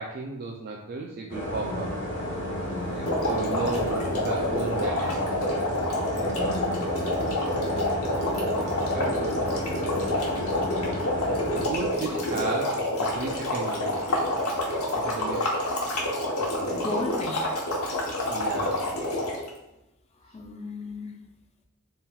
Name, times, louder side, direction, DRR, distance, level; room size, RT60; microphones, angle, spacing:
voice 1, 0.0-1.9 2.9-5.7 6.4-6.8 8.5-10.2 11.5-14.1 14.9-15.5 16.4-16.7 18.3-18.9, right 3 dB, 45° right, 0 dB, 0.4 m, -35 dB
sound 1, 1.3-11.6, equal, 55° left, 1.2 m, -32 dB
voice 2, 1.6-1.9 2.7-3.2 3.6-3.9 6.2-7.5 10.6-10.9 16.7-17.5 20.2-21.2, left 2 dB, 30° left, 3 dB, 0.4 m, -37 dB
sound 2, 3.0-19.5, left 1 dB, 85° left, 1.0 m, -28 dB
4.2 x 3.6 x 2.3 m, 0.90 s
head